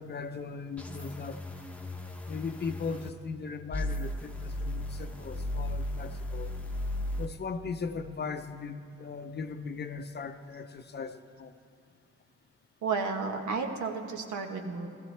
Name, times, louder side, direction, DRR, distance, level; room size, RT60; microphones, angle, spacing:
voice 1, 0.0-1.4 2.3-6.5 7.2-11.5, left 5 dB, 35° left, 8 dB, 0.6 m, -38 dB
sound 1, 0.8-3.1 3.7-7.3, left 1 dB, 5° left, 0.9 m, -35 dB
voice 2, 12.8-14.9, right 4 dB, 75° right, 4 dB, 1.3 m, -32 dB
15.0 x 14.5 x 3.3 m, 2.6 s
cardioid pair, 90°, 30 cm